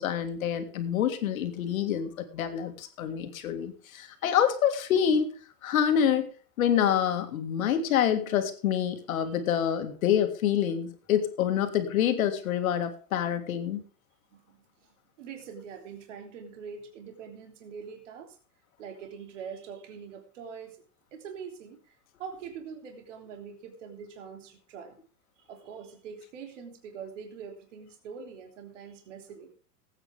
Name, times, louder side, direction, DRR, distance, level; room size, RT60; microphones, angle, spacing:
voice 1, 0.0-5.3 5.6-6.3 6.6-13.8, left 9 dB, 55° left, 7 dB, 2.1 m, -27 dB
voice 2, 14.3-14.9 15.2-18.4 18.8-20.8 21.1-21.9 22.2-25.0 25.4-29.5, right 6 dB, 50° right, 4 dB, 3.2 m, -44 dB
19.0 x 8.9 x 3.5 m, 0.40 s
supercardioid pair, 175°, 49 cm